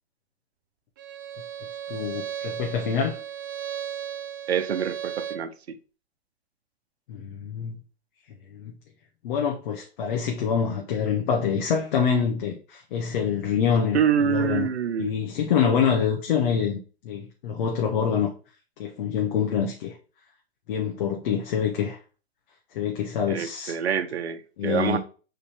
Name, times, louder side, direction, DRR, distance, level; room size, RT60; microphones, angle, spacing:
Bowed string instrument, 1.0-5.5, right 9 dB, 20° right, 0.3 m, -35 dB
voice 1, 1.9-3.2 7.1-7.8 8.5-8.7 9.2-14.7 15.0-18.3 18.8-19.9 20.7-22.0 22.7-23.7 24.6-25.0, left 7 dB, 50° left, 1.3 m, -26 dB
voice 2, 4.5-5.8 13.9-15.1 23.3-25.0, right 8 dB, 90° right, 0.9 m, -26 dB
7.1 x 3.9 x 3.5 m
hypercardioid pair, 150°, 32 cm